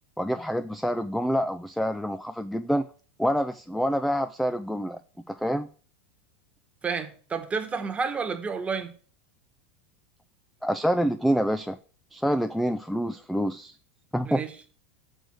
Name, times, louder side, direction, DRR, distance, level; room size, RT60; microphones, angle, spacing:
voice 1, 0.2-2.9 3.2-5.0 5.3-5.7 10.6-11.8 12.1-13.8 14.1-14.4, equal, ahead, 0.3 m, -27 dB
voice 2, 6.8-8.9 14.2-14.5, right 5 dB, 20° right, 1.2 m, -30 dB
6.4 x 4.5 x 6.2 m
supercardioid pair, 115°, 7 cm